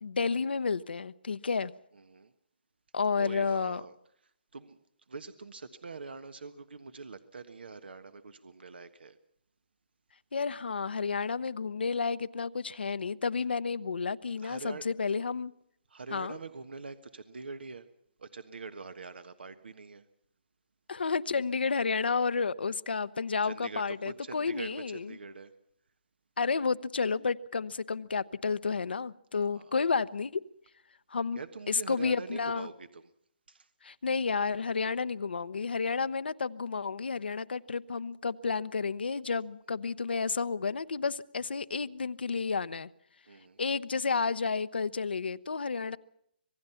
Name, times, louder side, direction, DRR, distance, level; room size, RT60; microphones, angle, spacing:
voice 1, 0.0-1.7 2.9-3.8 10.3-15.5 16.1-16.4 20.9-25.2 26.4-30.4 31.1-31.4 31.7-32.7 33.8-42.9 43.6-46.0, left 5 dB, 90° left, 14 dB, 0.9 m, -31 dB
voice 2, 1.9-2.3 3.1-3.9 4.5-4.8 5.1-9.2 14.4-14.8 15.9-17.9 18.2-20.0 23.4-25.5 29.5-29.7 31.3-33.0 33.5-33.7 43.3-43.6 45.8-46.0, right 4 dB, 90° right, 10 dB, 1.4 m, -44 dB
26.5 x 18.5 x 5.7 m, 0.71 s
hypercardioid pair, 160°, 5 cm